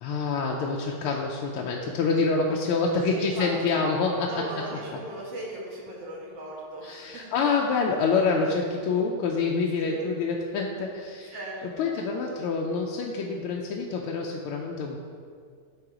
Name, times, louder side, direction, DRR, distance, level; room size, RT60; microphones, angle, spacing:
voice 1, 0.0-4.3 6.8-11.3 11.8-15.0, left 4 dB, 85° left, -1 dB, 1.5 m, -26 dB
voice 2, 3.1-3.8 4.3-7.3 9.8-10.0 11.2-11.9, right 1 dB, 60° right, -4 dB, 2.2 m, -38 dB
9.8 x 4.0 x 4.9 m, 2.1 s
omnidirectional pair, 2.3 m